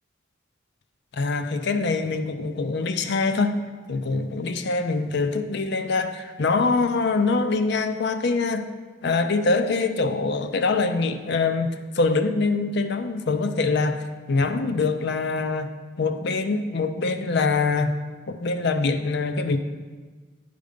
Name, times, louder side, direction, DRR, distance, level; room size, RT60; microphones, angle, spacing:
voice 1, 1.1-3.6 3.9-8.7 9.0-15.7 16.0-18.0 18.3-19.6, left 3 dB, 55° left, 9 dB, 0.5 m, -24 dB
10.5 x 5.2 x 5.1 m, 1.4 s
head